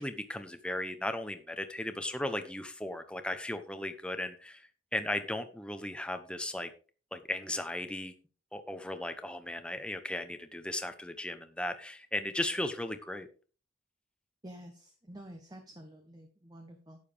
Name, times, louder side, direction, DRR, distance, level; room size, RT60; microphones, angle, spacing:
voice 1, 0.0-6.7 7.1-8.1 8.5-13.3, left 1 dB, 5° left, 8 dB, 0.9 m, -36 dB
voice 2, 14.4-17.0, right 1 dB, 20° right, 4 dB, 1.1 m, -49 dB
11.5 x 9.2 x 3.5 m, 0.38 s
head